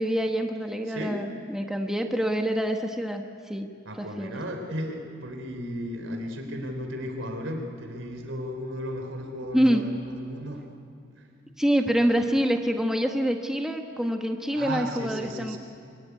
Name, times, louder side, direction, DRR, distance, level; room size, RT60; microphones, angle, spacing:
voice 1, 0.0-3.7 4.0-4.4 9.5-9.9 11.6-15.6, equal, 5° right, 4 dB, 1.2 m, -26 dB
voice 2, 0.9-1.2 3.8-10.7 11.2-11.3 14.5-15.6, equal, 90° right, 4 dB, 3.8 m, -35 dB
23.5 x 23.5 x 9.5 m, 2.3 s
head